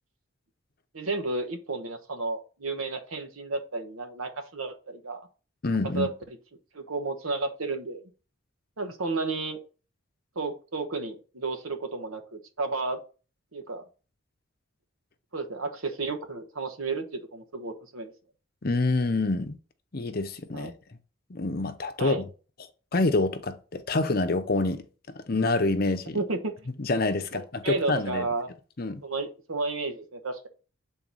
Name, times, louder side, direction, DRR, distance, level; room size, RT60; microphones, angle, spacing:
voice 1, 0.9-5.3 5.9-6.4 6.7-8.0 8.8-9.6 10.3-13.0 13.5-13.8 15.3-18.1 20.5-20.7 22.0-22.2 26.1-26.5 27.3-28.5 29.0-30.5, right 3 dB, 85° right, 1.1 m, -32 dB
voice 2, 5.6-6.1 18.6-19.6 19.9-20.7 21.3-22.3 22.9-24.8 25.1-26.2 26.8-28.3 28.8-29.0, left 2 dB, 45° left, 0.7 m, -27 dB
7.4 x 3.9 x 4.0 m
head